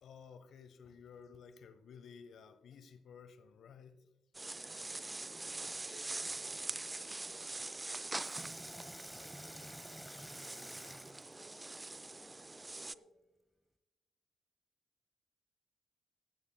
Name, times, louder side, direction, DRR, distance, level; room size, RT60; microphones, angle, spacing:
voice 1, 0.0-4.1, left 6 dB, 60° left, 0.8 m, -55 dB
sound 1, 4.3-12.9, right 2 dB, 25° right, 0.4 m, -44 dB
Water tap faucet / Sink (filling or washing), 5.2-5.8 8.1-12.1 12.7-12.8, equal, 5° right, 0.8 m, -51 dB
voice 2, 5.5-13.1, left 2 dB, 85° left, 2.7 m, -65 dB
15.0 x 13.5 x 2.2 m
hypercardioid pair, 40°, 0 cm